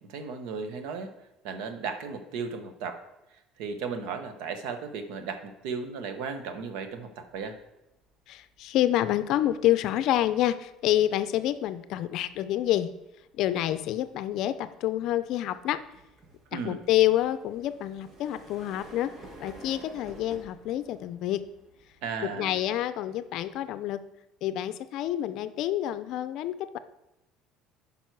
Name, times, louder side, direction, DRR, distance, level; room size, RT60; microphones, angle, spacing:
voice 1, 0.1-1.1 1.4-3.0 3.6-7.6 16.5-16.8 22.0-22.6, right 5 dB, 75° right, 8 dB, 1.0 m, -35 dB
sound 1, 7.3-24.0, right 2 dB, 35° right, 1.4 m, -53 dB
voice 2, 8.3-12.9 13.4-15.8 16.5-19.1 19.4-21.4 22.2-24.0 24.4-26.8, left 13 dB, 60° left, 13 dB, 0.5 m, -28 dB
9.1 x 5.4 x 4.7 m, 0.94 s
cardioid pair, 145°, 0 cm